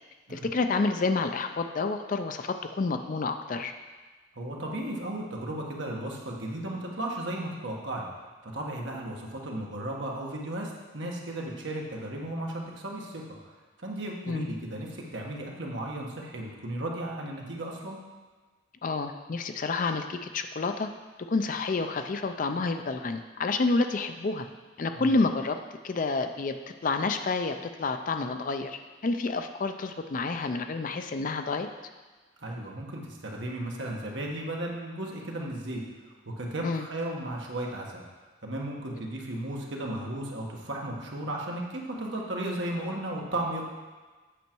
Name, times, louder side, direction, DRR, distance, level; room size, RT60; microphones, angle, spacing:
voice 1, 0.3-3.7 14.3-14.5 18.8-20.9 21.3-24.5 24.8-25.6 25.8-26.6 26.8-31.7 36.6-36.9, left 3 dB, 40° left, 7 dB, 0.4 m, -29 dB
voice 2, 4.3-8.1 8.4-13.2 13.8-18.0 25.0-25.1 32.4-35.8 36.4-38.0 38.4-43.6, right 1 dB, 60° right, -1 dB, 1.3 m, -35 dB
8.3 x 6.3 x 4.6 m, 1.3 s
head